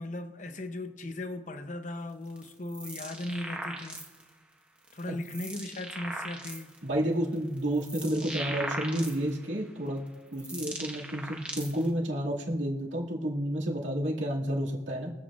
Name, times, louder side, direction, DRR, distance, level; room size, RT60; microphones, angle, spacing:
voice 1, 0.0-4.0 4.9-6.7, left 1 dB, 40° left, 0.7 m, -37 dB
sound 1, 2.3-4.3 4.9-6.8 7.3-9.5 10.1-11.9, right 1 dB, 5° right, 1.2 m, -39 dB
voice 2, 6.8-10.0 10.3-15.1, right 1 dB, 75° right, 2.2 m, -30 dB
23.5 x 8.2 x 2.5 m
head